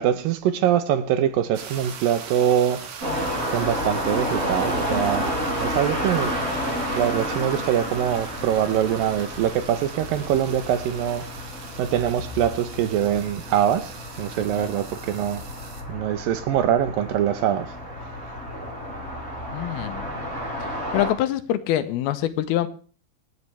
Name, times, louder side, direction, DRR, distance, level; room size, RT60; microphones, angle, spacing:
voice 1, 0.0-2.8 3.5-5.3 5.6-6.3 7.0-11.3 11.8-15.4 15.9-17.7, right 10 dB, 75° right, 2.4 m, -23 dB
sound 1, 1.5-15.8, right 7 dB, 55° right, 2.2 m, -41 dB
sound 2, 3.0-21.1, equal, 40° right, 8.1 m, -31 dB
voice 2, 19.5-22.7, left 12 dB, 85° left, 2.7 m, -26 dB
26.5 x 9.6 x 3.3 m
omnidirectional pair, 4.5 m